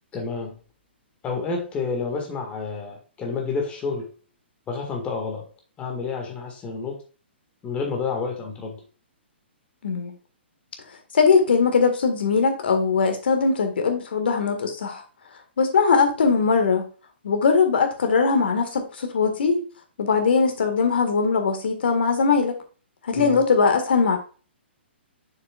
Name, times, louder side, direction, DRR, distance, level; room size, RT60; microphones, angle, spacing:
voice 1, 0.1-0.6 1.2-4.1 4.7-5.5 5.8-7.0 7.6-8.8 23.1-23.4, left 4 dB, 20° left, 1.7 m, -29 dB
voice 2, 11.1-15.0 15.6-16.9 17.2-19.6 20.0-22.6 23.0-24.2, left 5 dB, 60° left, 1.7 m, -20 dB
6.9 x 6.5 x 2.4 m
figure-of-eight pair, 120°, 6 cm